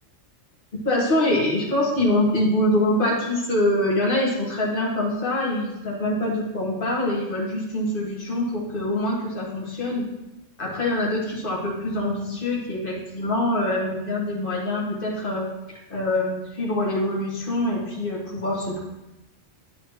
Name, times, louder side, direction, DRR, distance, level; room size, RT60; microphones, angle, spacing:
voice 1, 0.8-10.1 10.6-18.8, left 1 dB, 45° left, -4 dB, 2.0 m, -24 dB
9.9 x 6.5 x 3.0 m, 0.94 s
omnidirectional pair, 1.3 m